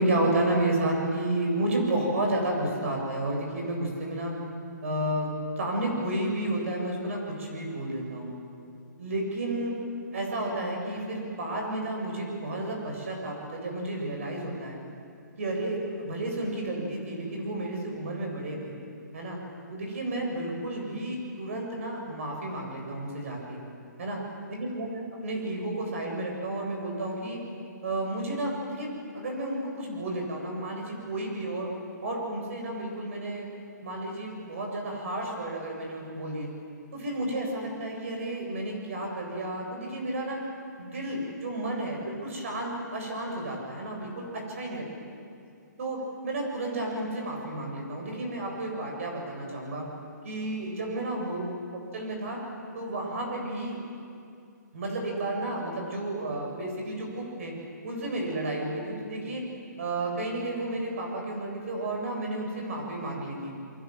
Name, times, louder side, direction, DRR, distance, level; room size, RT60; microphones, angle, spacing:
voice 1, 0.0-4.3 4.8-5.3 5.6-8.3 9.0-9.8 10.1-14.8 15.4-18.8 19.1-19.4 19.7-23.6 24.0-24.2 24.5-27.4 27.8-31.7 32.0-33.5 33.8-36.5 36.9-40.4 40.8-44.8 45.8-49.9 50.2-51.4 51.9-52.4 52.7-53.7 54.7-57.5 57.8-59.4 59.8-63.5, right 1 dB, 45° right, 0 dB, 7.8 m, -31 dB
29.0 x 23.0 x 7.8 m, 2.5 s
hypercardioid pair, 170°, 10 cm